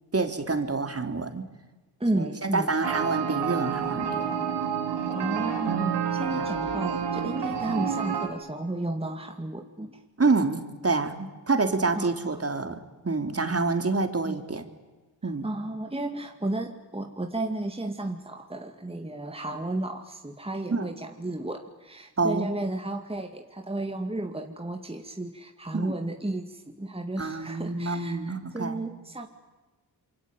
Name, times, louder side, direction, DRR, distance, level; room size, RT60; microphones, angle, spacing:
voice 1, 0.1-1.5 2.2-4.4 6.3-6.5 10.2-14.6 15.2-15.5 20.7-20.9 22.2-22.5 25.7-25.9 27.2-28.8, right 3 dB, 35° right, 7 dB, 3.5 m, -27 dB
voice 2, 2.0-2.7 5.1-10.0 12.0-12.4 14.2-14.4 15.2-29.3, right 2 dB, 15° right, 4 dB, 2.4 m, -33 dB
sound 1, 2.8-8.3, right 7 dB, 85° right, 3.8 m, -29 dB
27.0 x 23.5 x 9.2 m, 1.2 s
cardioid pair, 55°, 41 cm